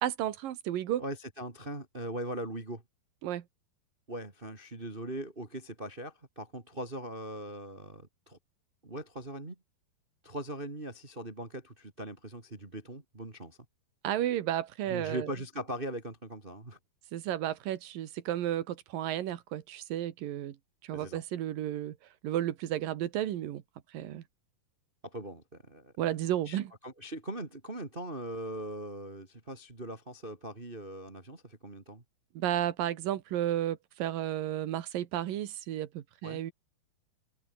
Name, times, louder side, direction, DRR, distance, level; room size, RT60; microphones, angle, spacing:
voice 1, 0.0-1.0 3.2-3.4 14.0-15.3 17.1-20.6 20.8-22.0 22.2-23.6 23.9-24.2 26.0-26.7 32.3-36.5, right 12 dB, 70° right, 3.1 m, -32 dB
voice 2, 1.0-2.8 4.1-8.4 8.8-9.6 10.2-13.6 14.9-16.8 20.9-21.2 25.0-25.9 26.5-32.0 36.2-36.4, right 1 dB, 20° right, 2.0 m, -40 dB
omnidirectional pair, 4.4 m